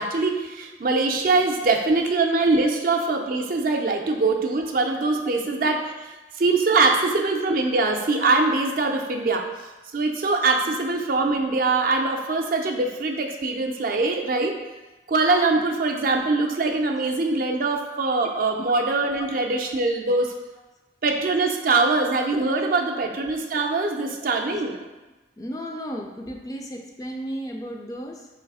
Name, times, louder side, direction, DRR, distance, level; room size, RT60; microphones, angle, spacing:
voice 1, 0.0-5.9 6.4-9.5 9.9-14.5 15.1-20.3 21.0-24.8, right 3 dB, 50° right, 2 dB, 0.5 m, -23 dB
voice 2, 25.4-28.3, equal, 20° left, 2 dB, 0.3 m, -34 dB
3.2 x 3.1 x 4.7 m, 1.1 s
head